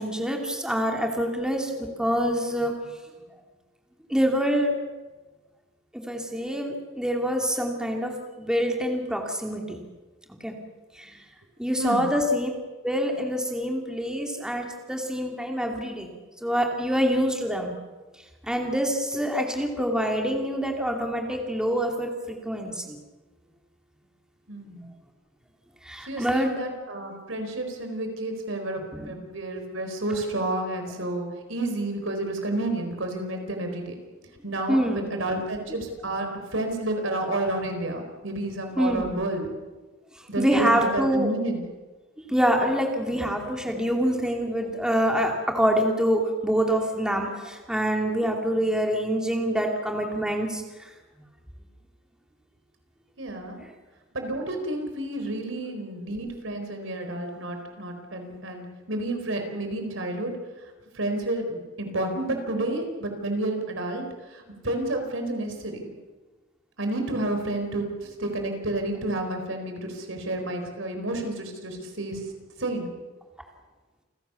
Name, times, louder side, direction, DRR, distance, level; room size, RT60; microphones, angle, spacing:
voice 1, 0.0-2.7 4.1-4.7 6.1-9.8 10.4-10.5 11.0-11.1 11.6-12.5 12.8-16.1 16.4-17.7 18.4-23.0 25.9-26.5 29.0-29.1 34.7-35.1 38.8-39.1 40.4-41.3 42.3-50.6, equal, 5° right, 1 dB, 2.7 m, -25 dB
voice 2, 11.8-12.1 24.5-24.9 26.1-34.0 34.4-39.5 40.3-41.6 53.2-53.6 54.1-60.3 60.9-64.0 64.3-65.9 66.8-72.2 72.6-72.9, right 2 dB, 70° right, 5 dB, 4.5 m, -30 dB
29.0 x 16.0 x 7.0 m, 1.2 s
head